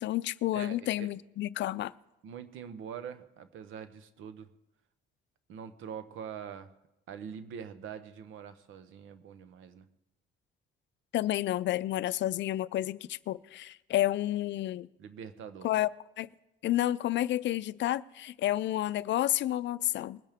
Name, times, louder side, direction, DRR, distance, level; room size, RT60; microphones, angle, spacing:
voice 1, 0.0-1.9 11.1-14.9 15.6-15.9 16.2-16.3 16.6-20.2, left 14 dB, 65° left, 0.4 m, -30 dB
voice 2, 0.5-1.1 2.2-4.5 5.5-6.7 7.1-9.9 15.0-15.7, right 7 dB, 80° right, 0.9 m, -44 dB
21.0 x 10.5 x 3.6 m
cardioid pair, 90°, 20 cm